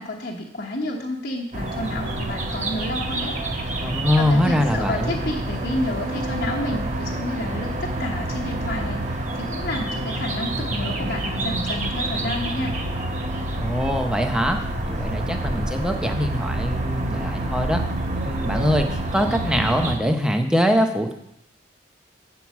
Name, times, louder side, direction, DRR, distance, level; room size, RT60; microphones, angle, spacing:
voice 1, 0.0-3.3 3.8-12.8, left 1 dB, 50° left, -3 dB, 1.0 m, -30 dB
sound 1, 1.5-20.0, right 1 dB, 35° right, 0.9 m, -28 dB
voice 2, 3.8-5.2 13.6-14.6 14.8-17.8 18.2-21.1, equal, 5° right, 5 dB, 0.6 m, -23 dB
8.4 x 4.7 x 7.1 m, 0.78 s
head